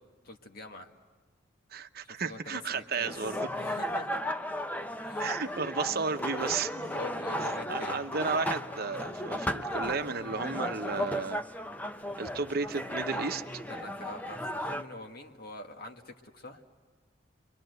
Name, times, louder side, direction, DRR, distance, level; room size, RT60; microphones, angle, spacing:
voice 1, 0.2-0.9 2.0-4.2 5.0-5.3 6.9-8.0 13.7-16.6, left 2 dB, 55° left, 4 dB, 1.6 m, -45 dB
voice 2, 1.7-3.4 5.2-6.9 7.7-11.4 12.2-13.4, right 4 dB, 55° right, 8 dB, 0.9 m, -33 dB
sound 1, 3.0-14.8, equal, 10° left, 0.7 m, -35 dB
29.0 x 24.0 x 8.0 m, 1.4 s
head